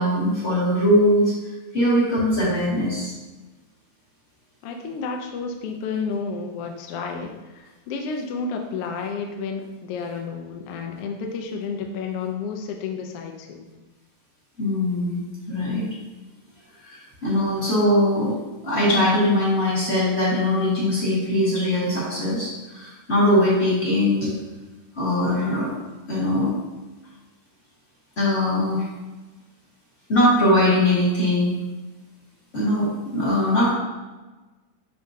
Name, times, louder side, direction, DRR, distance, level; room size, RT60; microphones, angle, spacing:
voice 1, 0.0-1.3 1.7-3.1 14.6-15.2 15.5-15.9 16.8-18.3 18.6-24.3 25.0-25.7 26.1-26.5 28.2-28.8 30.1-31.5 32.5-33.7, left 1 dB, 25° left, -8 dB, 1.6 m, -21 dB
voice 2, 4.6-13.7, left 5 dB, 75° left, 3 dB, 1.4 m, -31 dB
10.5 x 3.4 x 2.7 m, 1.2 s
omnidirectional pair, 3.4 m